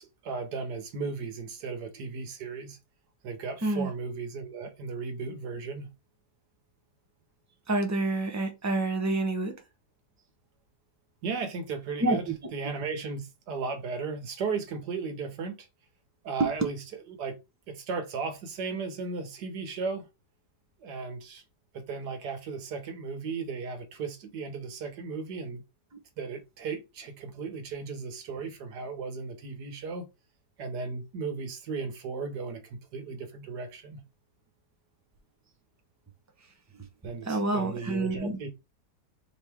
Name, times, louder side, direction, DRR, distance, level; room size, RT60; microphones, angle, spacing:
voice 1, 0.0-2.8 3.2-5.9 11.2-12.2 12.5-15.7 16.2-16.8 17.1-17.4 17.7-20.1 20.8-21.4 21.7-25.6 26.2-30.1 30.6-34.0 37.0-38.5, right 4 dB, 85° right, 1.7 m, -35 dB
voice 2, 7.7-9.5 12.0-12.3 36.8-36.9 37.2-38.4, right 2 dB, 20° right, 0.5 m, -28 dB
5.0 x 3.1 x 3.5 m
omnidirectional pair, 1.7 m